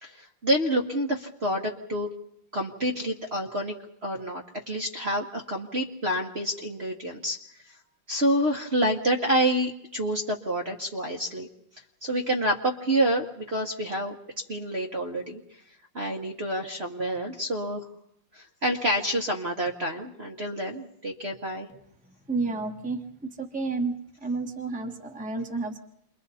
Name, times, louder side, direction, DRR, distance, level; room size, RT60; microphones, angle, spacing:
voice 1, 0.0-2.1 2.5-3.7 4.0-7.4 8.1-11.5 12.0-14.1 14.5-15.4 15.9-17.9 18.3-21.7, right 1 dB, 40° right, 1 dB, 1.2 m, -28 dB
voice 2, 22.3-23.9 24.2-25.8, right 3 dB, 5° right, 2 dB, 1.1 m, -31 dB
28.5 x 22.5 x 4.2 m, 0.74 s
omnidirectional pair, 2.0 m